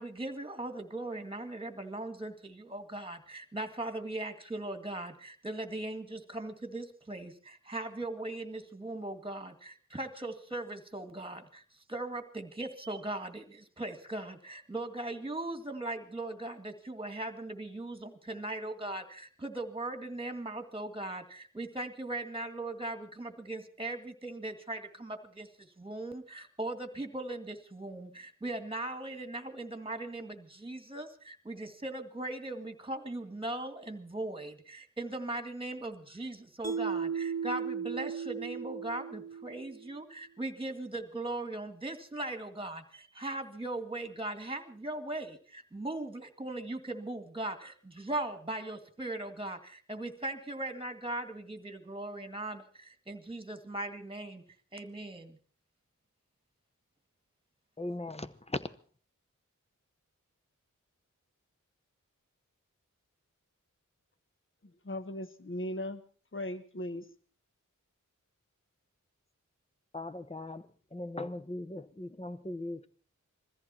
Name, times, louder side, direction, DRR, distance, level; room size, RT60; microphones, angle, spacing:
voice 1, 0.0-54.4 54.7-55.4, right 2 dB, 15° right, 2.0 m, -39 dB
Mallet percussion, 36.6-39.9, right 6 dB, 50° right, 0.9 m, -36 dB
voice 2, 57.8-58.6 69.9-70.6 70.9-72.9, left 2 dB, 20° left, 0.9 m, -38 dB
voice 3, 64.6-66.0 66.3-67.1, left 1 dB, 40° left, 1.2 m, -38 dB
22.0 x 14.5 x 4.4 m
wide cardioid pair, 65°, 32 cm